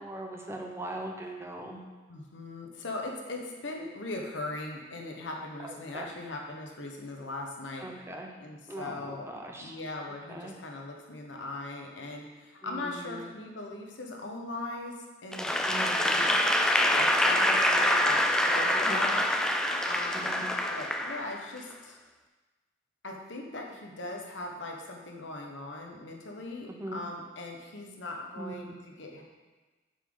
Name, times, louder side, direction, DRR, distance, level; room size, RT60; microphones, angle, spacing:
voice 1, 0.0-1.9 5.6-6.1 7.8-8.4 8.7-9.8 10.3-10.5 12.6-13.3 15.7-16.2 18.8-19.1 20.1-20.4 26.7-27.0 28.4-28.7, right 1 dB, 15° right, 2 dB, 0.7 m, -40 dB
voice 2, 2.1-7.9 8.4-9.3 9.6-16.3 16.8-19.3 19.8-20.3 20.7-22.0 23.0-29.2, left 2 dB, 85° left, 1 dB, 1.2 m, -40 dB
Applause / Crowd, 15.3-21.6, left 1 dB, 5° left, 0.4 m, -25 dB
8.7 x 5.6 x 3.9 m, 1.2 s
head